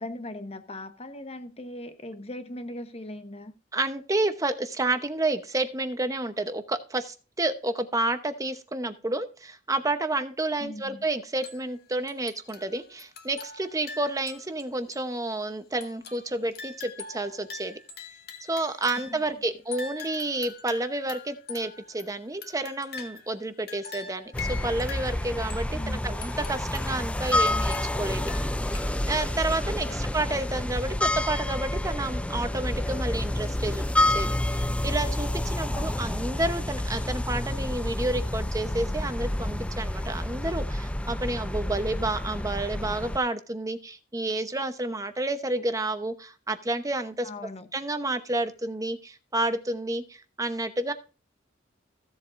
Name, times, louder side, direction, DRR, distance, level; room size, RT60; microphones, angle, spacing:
voice 1, 0.0-3.5 10.6-11.0 19.1-19.3 25.7-26.2 29.8-30.1 35.7-35.9 47.2-47.7, left 1 dB, 30° left, 1.1 m, -39 dB
voice 2, 3.7-17.8 18.5-28.2 28.7-28.8 29.1-47.3 47.7-50.9, right 2 dB, 15° right, 0.9 m, -30 dB
sound 1, 11.4-11.8 12.1-14.6 14.9-15.0 15.8-19.3 19.7-23.4 23.7-25.7 26.2-29.2 29.5-29.6, left 5 dB, 55° left, 1.7 m, -43 dB
sound 2, 24.3-43.2, left 1 dB, 5° left, 0.4 m, -29 dB
15.5 x 7.7 x 2.6 m
head